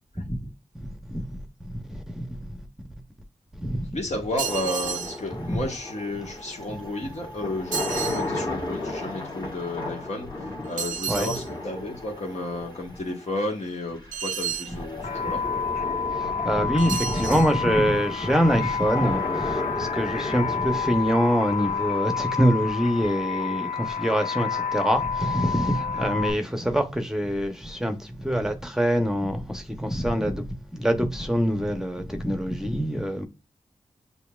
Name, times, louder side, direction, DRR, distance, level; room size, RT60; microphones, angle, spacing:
voice 1, 0.8-2.6 3.6-3.9 11.1-11.3 16.1-33.3, equal, 5° right, 0.8 m, -25 dB
voice 2, 3.9-10.3 10.6-15.4, left 1 dB, 60° left, 1.4 m, -32 dB
sound 1, 4.4-23.5, left 2 dB, 35° left, 1.5 m, -35 dB
sound 2, 4.4-5.2 7.7-8.2 10.8-11.5 14.1-14.7 16.8-17.5, right 8 dB, 85° right, 0.5 m, -31 dB
sound 3, 15.0-26.3, left 6 dB, 85° left, 0.4 m, -29 dB
6.8 x 2.7 x 2.4 m
cardioid pair, 45°, 13 cm